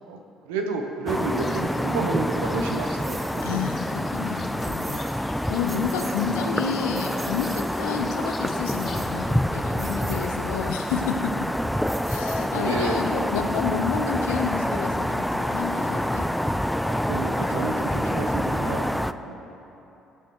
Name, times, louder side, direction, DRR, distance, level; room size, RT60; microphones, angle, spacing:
voice 1, 0.0-3.6 9.1-9.8 12.3-13.2 16.8-19.5, right 3 dB, 80° right, 4 dB, 0.9 m, -31 dB
sound 1, 1.1-19.1, equal, 5° left, 0.4 m, -27 dB
sound 2, 1.4-9.3, left 5 dB, 40° left, 0.8 m, -44 dB
sound 3, 3.0-3.5 4.6-5.2 5.6-6.3 6.7-7.8 8.6-9.4 9.7-10.3 11.9-12.7, right 3 dB, 35° right, 1.5 m, -42 dB
voice 2, 3.4-11.5 12.0-16.3, left 6 dB, 80° left, 4 dB, 0.7 m, -30 dB
17.5 x 8.0 x 3.0 m, 3.0 s
hypercardioid pair, 60°, 0 cm